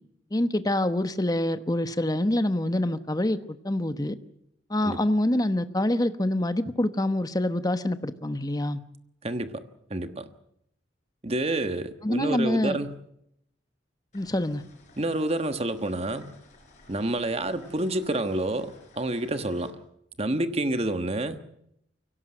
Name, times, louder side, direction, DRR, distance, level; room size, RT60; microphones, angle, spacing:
voice 1, 0.3-4.2 4.7-8.8 12.0-12.8 14.1-14.6, left 1 dB, 20° left, 1.0 m, -26 dB
voice 2, 9.2-9.6 9.9-10.2 11.2-12.9 15.0-16.3 16.9-19.7 20.2-21.4, right 1 dB, 35° right, 1.3 m, -28 dB
sound 1, 14.1-19.7, left 2 dB, 40° left, 5.8 m, -55 dB
24.0 x 17.5 x 7.7 m
head